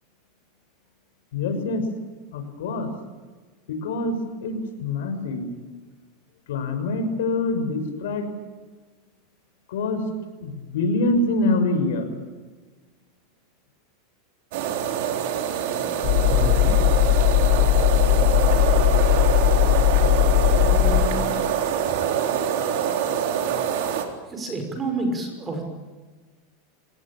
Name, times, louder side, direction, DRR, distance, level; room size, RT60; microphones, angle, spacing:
voice 1, 1.3-1.9 2.3-2.9 3.7-5.5 6.5-8.3 9.7-10.0 10.4-12.2, left 2 dB, 80° left, 7 dB, 6.1 m, -25 dB
sound 1, 14.5-24.1, right 9 dB, 60° right, 4.0 m, -25 dB
sound 2, 16.0-21.1, left 15 dB, 50° left, 2.3 m, -18 dB
voice 2, 16.2-16.7 20.5-22.1 24.3-25.6, right 2 dB, 15° right, 4 dB, 5.9 m, -30 dB
26.5 x 18.5 x 8.8 m, 1.3 s
supercardioid pair, 160°, 0 cm